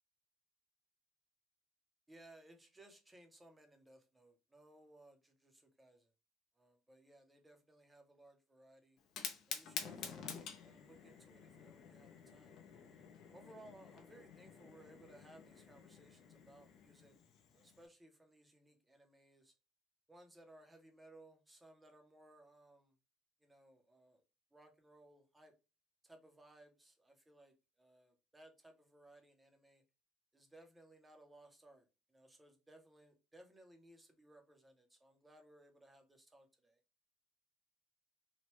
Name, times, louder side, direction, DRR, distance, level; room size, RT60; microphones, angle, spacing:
voice 1, 2.1-6.1 6.6-9.0 9.5-12.8 13.3-17.2 17.5-19.5 20.1-22.9 23.4-24.2 24.5-25.5 26.0-29.8 30.3-36.8, right 1 dB, 10° right, 0.6 m, -62 dB
Fire, 9.0-17.9, left 7 dB, 55° left, 0.6 m, -50 dB
3.0 x 2.1 x 3.0 m
cardioid pair, 160°, 0 cm